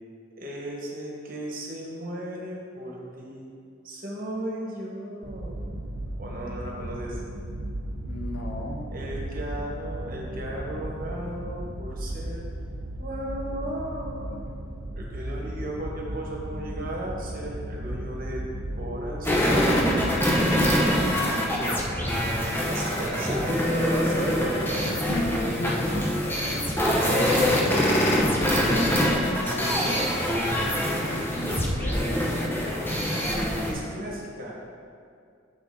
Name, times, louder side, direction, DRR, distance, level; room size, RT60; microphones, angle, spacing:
voice 1, 0.4-3.5 3.8-5.7 6.2-7.2 8.9-12.4 13.0-14.5 14.9-20.0 22.4-24.9 29.3-30.0 33.5-34.5, right 1 dB, 45° right, -2 dB, 1.3 m, -35 dB
sound 1, 5.2-20.9, right 1 dB, 65° right, 0.6 m, -35 dB
voice 2, 8.0-8.9 21.1-22.7 24.8-29.9 30.8-32.8 33.7-33.8 34.1-34.2, left 1 dB, 75° left, 2 dB, 0.8 m, -36 dB
sound 2, 19.2-33.7, equal, 10° left, 0.7 m, -24 dB
7.0 x 6.3 x 3.7 m, 2.4 s
head